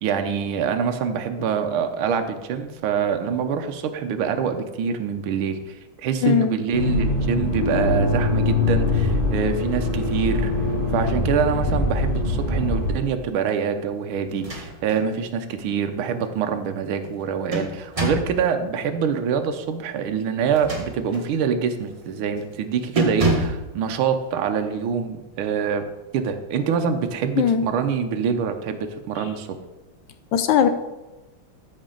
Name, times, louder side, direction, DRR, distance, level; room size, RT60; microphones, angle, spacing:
voice 1, 0.0-5.6 6.0-10.5 10.9-25.8 26.1-29.5, right 6 dB, 80° right, 6 dB, 1.6 m, -25 dB
voice 2, 6.2-6.6 27.4-27.7 30.3-30.7, left 8 dB, 75° left, 9 dB, 1.2 m, -19 dB
Accelerating revving vroom, 6.7-13.0, left 2 dB, 30° left, 1.3 m, -23 dB
sound 1, 14.3-15.0 15.5-15.6 17.0-18.4 20.4-21.3 21.8-22.0 22.4-22.6 23.0-23.7, right 1 dB, 20° right, 1.1 m, -27 dB
13.0 x 5.2 x 3.8 m, 1.1 s
omnidirectional pair, 2.3 m